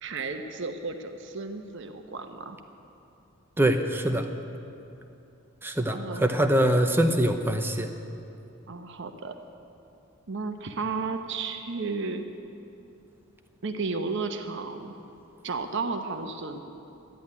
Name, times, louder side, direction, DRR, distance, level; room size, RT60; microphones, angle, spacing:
voice 1, 0.0-2.6 5.9-6.6 8.7-9.4 10.3-12.3 13.6-14.9 15.4-16.6, right 4 dB, 65° right, 6 dB, 1.0 m, -33 dB
voice 2, 3.6-4.3 5.6-7.9, right 1 dB, 10° right, 5 dB, 0.7 m, -24 dB
13.5 x 10.5 x 9.7 m, 2.7 s
head